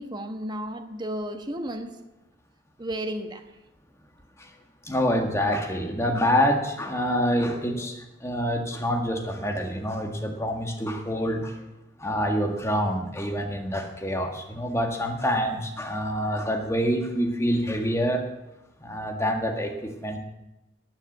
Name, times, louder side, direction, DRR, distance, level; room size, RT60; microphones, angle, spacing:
voice 1, 0.0-1.9 2.8-3.4, right 1 dB, 25° right, 6 dB, 1.2 m, -33 dB
voice 2, 4.9-11.6 12.0-18.2 18.8-20.2, equal, 15° left, 3 dB, 1.8 m, -26 dB
11.5 x 9.8 x 8.5 m, 0.97 s
head